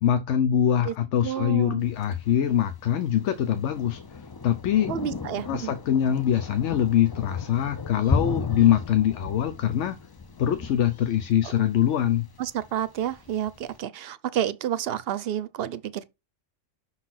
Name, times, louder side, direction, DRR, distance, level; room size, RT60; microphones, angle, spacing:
voice 1, 0.0-4.9 5.5-10.0 10.4-12.3, left 10 dB, 75° left, 1.0 m, -23 dB
voice 2, 1.2-1.8 4.9-5.7 12.4-16.1, right 10 dB, 60° right, 0.8 m, -30 dB
Thunder, 1.8-13.7, left 4 dB, 40° left, 0.3 m, -35 dB
6.0 x 4.1 x 5.8 m
omnidirectional pair, 1.3 m